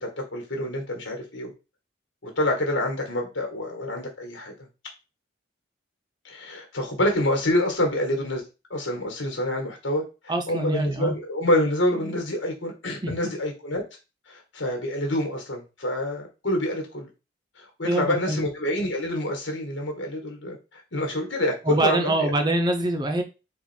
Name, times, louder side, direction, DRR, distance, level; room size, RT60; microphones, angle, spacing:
voice 1, 0.0-1.5 2.2-4.5 6.2-8.4 8.7-13.8 14.3-17.1 17.6-22.4, left 1 dB, 80° left, 2 dB, 1.5 m, -27 dB
voice 2, 10.3-11.1 13.0-13.1 17.8-18.4 21.7-23.2, right 1 dB, 20° right, 4 dB, 0.5 m, -24 dB
4.2 x 2.5 x 4.4 m, 0.29 s
head